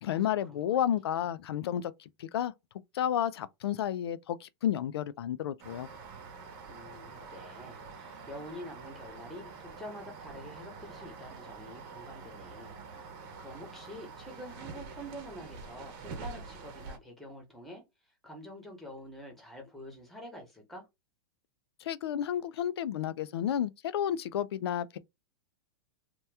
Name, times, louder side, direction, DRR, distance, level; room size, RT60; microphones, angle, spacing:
voice 1, 0.0-2.5 2.9-5.9 21.8-25.0, left 10 dB, 85° left, 0.4 m, -31 dB
sound 1, 5.6-17.0, right 4 dB, 40° right, 0.9 m, -46 dB
voice 2, 6.7-13.1 13.4-17.8 18.2-20.8, equal, ahead, 0.9 m, -47 dB
2.9 x 2.2 x 3.3 m
supercardioid pair, 160°, 13 cm